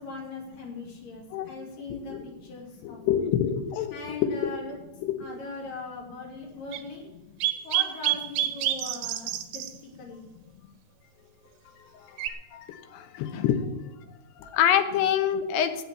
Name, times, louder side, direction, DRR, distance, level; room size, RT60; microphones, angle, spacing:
voice 1, 0.0-3.2 3.9-4.8 5.2-7.0 7.6-9.6 10.0-10.3, left 3 dB, 55° left, -2 dB, 4.4 m, -40 dB
voice 2, 2.8-4.5 5.0-5.1 11.9-13.7 14.0-15.8, left 9 dB, 85° left, 8 dB, 3.2 m, -27 dB
sound 1, 6.7-6.8 7.4-9.7 12.2-12.3, right 13 dB, 75° right, 2.2 m, -27 dB
17.0 x 5.9 x 8.3 m, 0.99 s
omnidirectional pair, 4.8 m